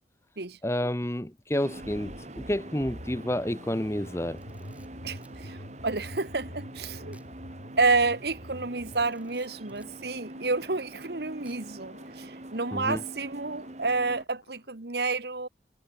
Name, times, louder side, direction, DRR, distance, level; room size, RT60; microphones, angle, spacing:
voice 1, 0.6-4.4 12.7-13.0, left 1 dB, 15° left, 1.1 m, -30 dB
sound 1, 1.6-14.2, right 1 dB, 40° right, 2.0 m, -45 dB
sound 2, 1.7-14.7, equal, 85° left, 7.2 m, -47 dB
Camera, 4.3-5.4 7.1-7.3 7.7-7.8 8.8-10.0 11.4-11.9, right 2 dB, 10° right, 6.8 m, -62 dB
voice 2, 5.0-5.6 5.8-7.2 7.8-15.5, right 3 dB, 60° right, 1.5 m, -29 dB
head